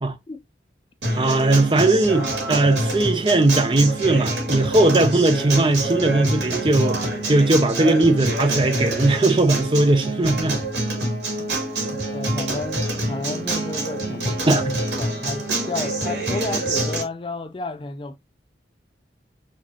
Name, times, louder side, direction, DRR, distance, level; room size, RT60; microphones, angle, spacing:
Acoustic guitar, 1.0-17.0, right 2 dB, 80° right, 2.3 m, -26 dB
voice 1, 1.2-10.6 14.5-14.6, right 2 dB, 30° right, 0.6 m, -19 dB
voice 2, 11.0-14.7 15.0-18.2, left 3 dB, 30° left, 0.4 m, -32 dB
4.2 x 4.2 x 3.0 m
head